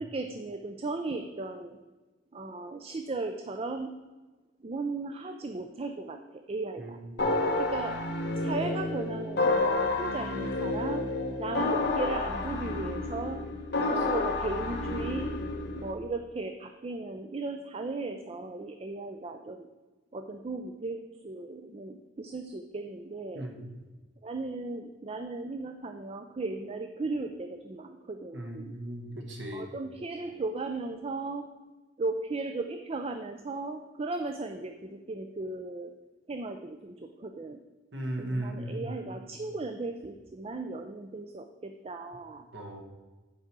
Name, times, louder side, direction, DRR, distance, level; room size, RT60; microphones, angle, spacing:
voice 1, 0.0-1.8 2.3-3.9 4.6-7.0 7.6-8.0 8.4-11.1 11.4-13.4 13.9-15.3 15.7-19.7 20.1-23.5 24.2-28.8 29.5-31.5 32.0-35.9 36.3-37.6 38.2-42.4, right 3 dB, 30° right, 7 dB, 0.4 m, -36 dB
voice 2, 6.8-7.2 23.3-23.6 28.3-29.7 37.9-38.9 42.5-42.8, right 1 dB, 70° right, 2 dB, 1.4 m, -37 dB
sound 1, 7.2-15.9, left 2 dB, 60° left, 1.0 m, -30 dB
9.1 x 4.9 x 6.0 m, 1.2 s
head